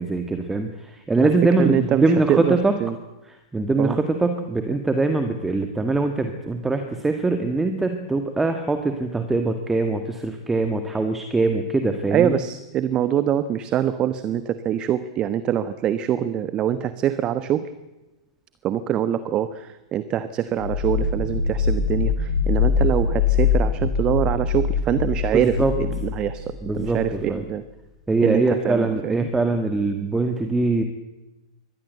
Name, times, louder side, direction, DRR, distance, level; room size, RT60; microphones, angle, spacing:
voice 1, 0.0-2.7 3.5-12.4 25.3-25.7 26.6-27.4 28.1-30.8, right 3 dB, 10° right, 7 dB, 1.8 m, -22 dB
voice 2, 1.6-2.9 3.8-4.0 12.1-17.7 18.6-27.6 28.2-29.3, right 10 dB, 30° right, 13 dB, 1.2 m, -24 dB
sound 1, 20.6-27.3, left 6 dB, 75° left, 7.3 m, -23 dB
24.0 x 18.5 x 8.1 m, 1.0 s
figure-of-eight pair, 100°, 3 cm